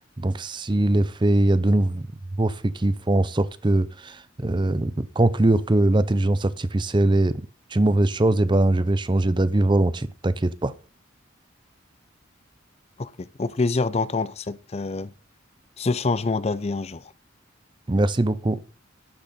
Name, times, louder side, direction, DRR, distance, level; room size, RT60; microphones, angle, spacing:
voice 1, 0.2-2.1 2.4-7.4 7.7-10.7 17.9-18.6, right 1 dB, 25° right, 0.6 m, -21 dB
voice 2, 13.0-15.1 15.8-17.1, left 3 dB, 30° left, 0.5 m, -26 dB
12.0 x 10.0 x 4.2 m
head